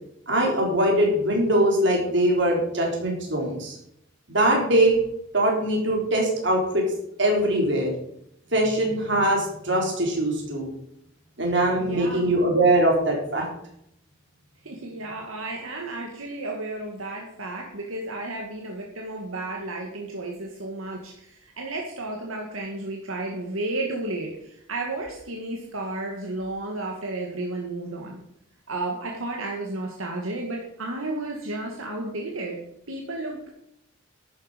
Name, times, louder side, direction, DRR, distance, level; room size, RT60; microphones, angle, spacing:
voice 1, 0.3-3.8 4.3-5.0 5.3-6.8 7.2-7.9 8.5-10.7 11.4-13.4, right 1 dB, 55° right, 0 dB, 4.0 m, -22 dB
voice 2, 11.8-12.3 14.6-28.2 28.7-32.6 32.9-33.5, right 2 dB, 80° right, 0 dB, 1.9 m, -32 dB
11.5 x 9.6 x 5.2 m, 0.75 s
head